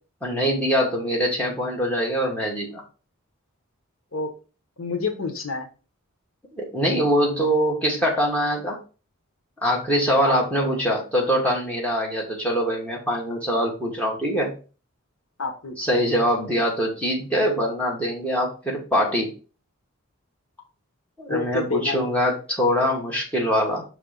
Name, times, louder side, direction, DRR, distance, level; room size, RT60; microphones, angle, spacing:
voice 1, 0.2-2.8 6.5-8.8 9.6-14.5 15.8-19.3 21.2-23.8, equal, 5° left, -3 dB, 1.6 m, -23 dB
voice 2, 4.8-5.7 10.2-10.4 15.4-15.8 21.3-22.0, left 4 dB, 80° left, 5 dB, 1.1 m, -27 dB
5.7 x 3.4 x 5.1 m, 0.36 s
head